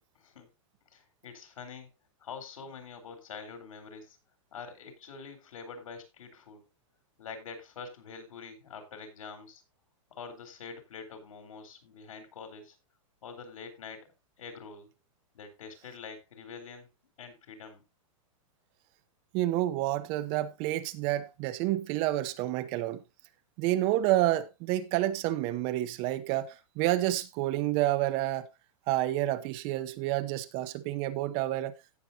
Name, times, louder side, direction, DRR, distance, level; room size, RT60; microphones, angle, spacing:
voice 1, 0.2-0.5 0.9-1.9 2.2-4.2 4.5-6.6 7.2-9.6 10.2-12.8 13.2-14.1 14.4-14.9 15.3-16.9 17.2-17.8, left 5 dB, 85° left, 3.8 m, -45 dB
voice 2, 19.3-23.0 23.6-28.5 28.9-31.7, right 15 dB, 30° right, 0.7 m, -29 dB
16.5 x 6.7 x 2.7 m
supercardioid pair, 155°, 17 cm